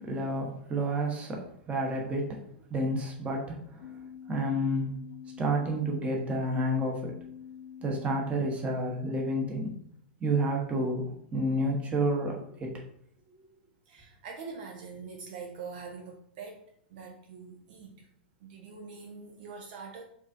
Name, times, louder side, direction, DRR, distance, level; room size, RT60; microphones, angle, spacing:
voice 1, 0.0-2.4 2.7-3.8 4.3-4.9 5.4-7.1 7.8-9.7 10.2-12.7, right 1 dB, 20° right, 0 dB, 1.0 m, -30 dB
sound 1, 3.8-9.6, left 8 dB, 55° left, 0.5 m, -46 dB
voice 2, 13.9-16.6 16.9-18.1 18.4-20.0, right 5 dB, 60° right, 2 dB, 0.6 m, -44 dB
4.6 x 2.6 x 2.6 m, 0.68 s
hypercardioid pair, 110°, 6 cm